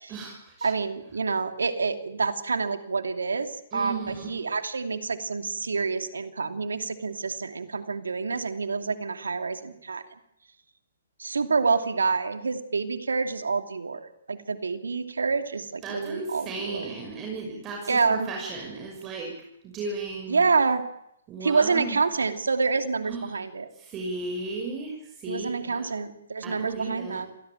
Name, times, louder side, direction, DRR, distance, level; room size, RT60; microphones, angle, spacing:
voice 1, 0.1-0.7 3.7-4.3 15.8-19.3 19.6-20.5 21.3-22.0 23.1-23.4 23.7-25.9 26.4-27.2, right 3 dB, 25° right, 1 dB, 6.2 m, -35 dB
voice 2, 0.6-10.0 11.2-16.9 17.9-18.3 20.3-20.8 21.4-23.7 25.3-27.3, right 4 dB, 85° right, 8 dB, 2.7 m, -27 dB
27.0 x 18.0 x 9.1 m, 0.80 s
hypercardioid pair, 140°, 0 cm